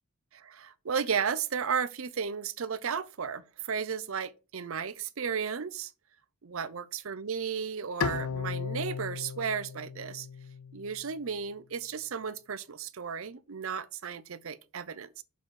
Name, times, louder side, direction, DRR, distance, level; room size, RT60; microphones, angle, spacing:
voice 1, 0.3-5.9 6.4-10.3 10.7-15.2, right 6 dB, 70° right, 0.6 m, -34 dB
Bowed string instrument, 8.0-11.2, left 6 dB, 75° left, 0.4 m, -36 dB
6.6 x 4.1 x 6.2 m
head